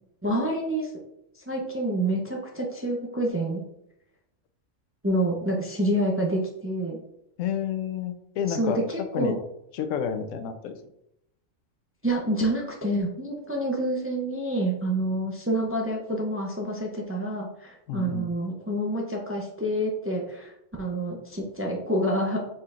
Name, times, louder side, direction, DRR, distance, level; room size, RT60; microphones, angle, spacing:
voice 1, 0.2-0.9 1.5-3.6 5.0-7.0 8.5-9.3 12.0-20.5 20.8-22.4, right 1 dB, 20° right, -1 dB, 0.4 m, -27 dB
voice 2, 7.4-8.8 9.1-9.4 9.7-10.7 17.9-18.3, left 7 dB, 75° left, 8 dB, 0.9 m, -30 dB
5.0 x 4.2 x 2.4 m, 0.80 s
omnidirectional pair, 1.3 m